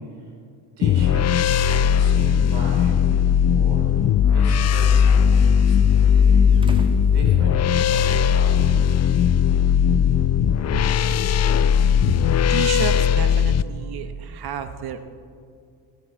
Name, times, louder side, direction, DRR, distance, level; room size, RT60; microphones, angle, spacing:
sound 1, 0.8-13.6, left 8 dB, 40° left, 0.5 m, -18 dB
voice 1, 0.8-3.1 3.5-4.0 4.3-8.9, right 1 dB, 80° right, 0 dB, 4.1 m, -36 dB
sound 2, 2.9-3.0 3.9-4.8 5.7-8.0 8.3-8.4 10.0-10.1, right 1 dB, 10° right, 1.3 m, -39 dB
voice 2, 11.7-12.2 12.5-15.1, right 8 dB, 65° right, 10 dB, 0.9 m, -32 dB
17.5 x 10.0 x 5.0 m, 2.3 s
cardioid pair, 90°, 41 cm